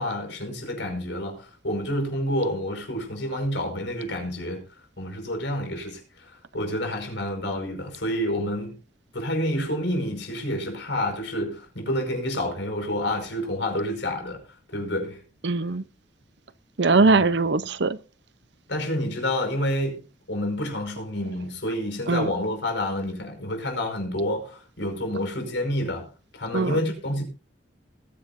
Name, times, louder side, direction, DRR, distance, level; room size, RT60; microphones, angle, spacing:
voice 1, 0.0-4.6 5.0-8.8 9.1-14.4 14.7-15.2 16.9-17.2 18.7-20.0 20.3-26.1 26.3-27.2, left 1 dB, 70° left, 5.4 m, -28 dB
voice 2, 15.4-15.8 16.8-18.0 22.1-22.3 26.5-26.8, right 3 dB, 65° right, 0.7 m, -21 dB
20.5 x 10.0 x 2.7 m
head